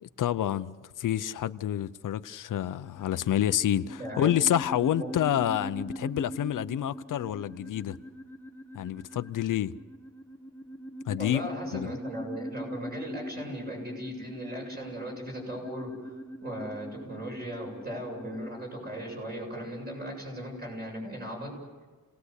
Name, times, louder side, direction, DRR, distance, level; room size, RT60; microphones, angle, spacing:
voice 1, 0.0-8.0 8.7-9.7 11.1-11.4 11.7-11.9, left 11 dB, 80° left, 0.7 m, -28 dB
sound 1, 2.8-19.2, equal, 5° left, 0.8 m, -41 dB
voice 2, 4.0-4.3 5.0-5.1 11.2-15.9 16.4-21.5, equal, 30° right, 7.8 m, -38 dB
28.5 x 19.0 x 8.2 m
wide cardioid pair, 175°, 31 cm